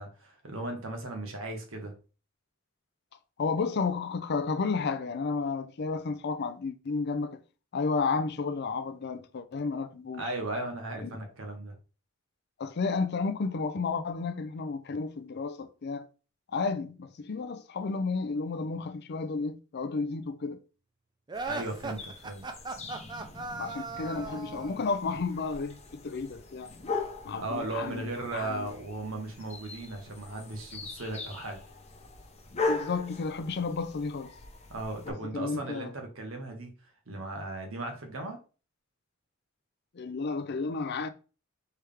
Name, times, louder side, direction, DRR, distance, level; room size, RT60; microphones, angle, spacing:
voice 1, 0.0-1.9 10.2-11.7 21.5-22.4 27.4-31.6 34.7-36.7 37.1-38.4, right 2 dB, 85° right, 1.4 m, -36 dB
voice 2, 3.4-7.4 7.7-10.2 11.0-11.1 12.6-16.1 16.5-20.6 23.6-26.7 27.2-28.7 32.7-34.3 35.1-35.9 39.9-41.1, left 4 dB, 55° left, 0.5 m, -32 dB
sound 1, 21.3-35.1, left 3 dB, 35° left, 0.9 m, -40 dB
sound 2, 21.3-24.8, right 3 dB, 20° right, 0.5 m, -38 dB
4.6 x 3.4 x 3.4 m
head